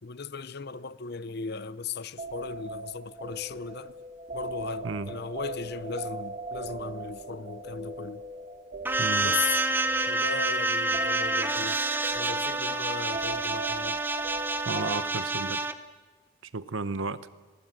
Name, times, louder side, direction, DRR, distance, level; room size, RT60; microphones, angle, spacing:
voice 1, 0.0-3.9 4.3-8.2 9.2-9.6 10.1-11.8 12.1-14.0, left 5 dB, 50° left, 0.7 m, -37 dB
sound 1, 2.2-15.0, right 1 dB, 35° right, 1.7 m, -40 dB
sound 2, 8.8-15.7, right 2 dB, 10° right, 0.8 m, -28 dB
voice 2, 9.0-9.3 14.7-15.6 16.5-17.3, right 3 dB, 65° right, 0.8 m, -33 dB
20.0 x 18.5 x 8.9 m
head